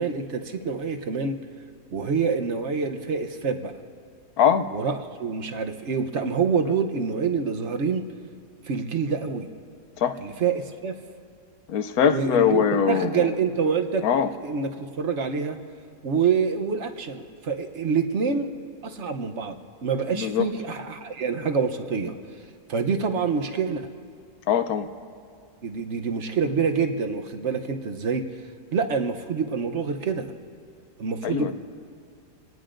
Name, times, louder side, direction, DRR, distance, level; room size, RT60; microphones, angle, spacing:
voice 1, 0.0-1.4 1.9-3.7 4.7-8.0 8.7-9.5 10.2-10.9 12.0-14.0 14.4-15.6 16.0-18.5 18.8-22.2 22.7-23.9 25.6-28.2 28.7-30.3 31.0-31.5, right 5 dB, 50° right, 6 dB, 1.0 m, -26 dB
voice 2, 4.4-4.7 10.0-10.2 11.7-13.3 14.0-14.3 20.1-20.5 24.5-24.9 31.2-31.5, left 8 dB, 70° left, 9 dB, 1.0 m, -22 dB
27.0 x 18.5 x 2.6 m, 2.3 s
omnidirectional pair, 1.8 m